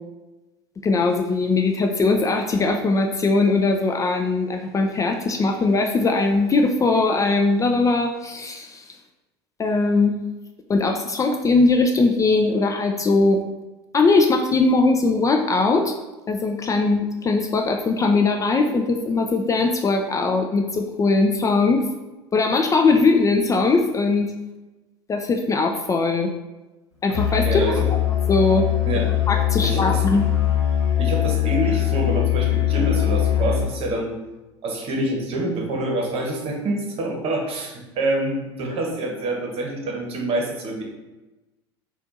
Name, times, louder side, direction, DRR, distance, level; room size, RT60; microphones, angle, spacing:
voice 1, 0.8-8.8 9.6-10.2 10.7-13.4 13.9-15.9 16.3-21.8 22.3-24.3 25.1-26.3 27.0-27.8 28.3-28.6 29.3-30.2, left 3 dB, 25° left, 3 dB, 0.4 m, -20 dB
Musical instrument, 27.1-33.9, left 12 dB, 80° left, 0.8 m, -21 dB
voice 2, 27.4-27.9 28.8-29.1 29.6-30.1 31.0-34.2 34.6-40.8, right 1 dB, 45° right, 1 dB, 1.0 m, -26 dB
4.3 x 2.4 x 4.0 m, 1.1 s
figure-of-eight pair, 75°, 14 cm